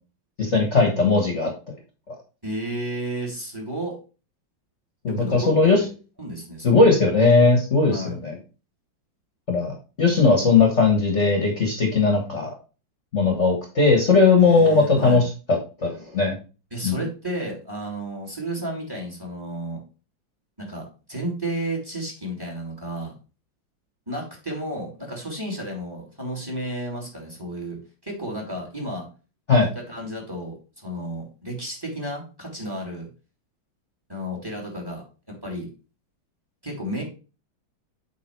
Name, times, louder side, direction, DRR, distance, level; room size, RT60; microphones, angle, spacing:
voice 1, 0.4-1.7 2.1-2.2 5.0-5.8 6.6-8.3 9.5-12.5 13.1-16.3 16.8-17.0 29.5-29.7, left 4 dB, 40° left, 1 dB, 1.7 m, -19 dB
voice 2, 2.4-4.0 5.1-5.9 6.2-6.8 7.8-8.2 14.4-15.2 16.7-19.8 20.6-23.1 24.1-27.8 28.0-29.0 29.7-30.5 30.8-33.1 34.1-35.0 35.3-35.7 36.6-37.0, right 1 dB, 10° right, 1 dB, 2.6 m, -32 dB
8.3 x 4.0 x 4.6 m, 0.33 s
omnidirectional pair, 2.2 m